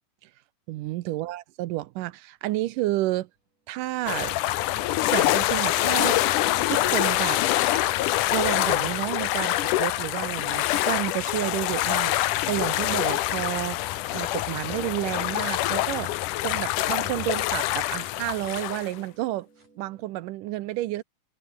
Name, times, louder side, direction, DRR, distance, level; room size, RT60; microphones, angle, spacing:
voice 1, 0.7-3.3 3.7-4.4 5.1-6.2 6.7-7.4 8.3-13.8 14.1-16.1 16.4-19.5 19.8-21.0, right 16 dB, 80° right, 2.3 m, -30 dB
sound 1, 2.3-9.2 9.8-15.4 15.9-16.0 17.1-17.2 17.7-17.9 18.4-20.1, right 3 dB, 60° right, 9.4 m, -56 dB
sound 2, 4.1-18.9, left 15 dB, 75° left, 2.4 m, -25 dB
omnidirectional pair, 3.8 m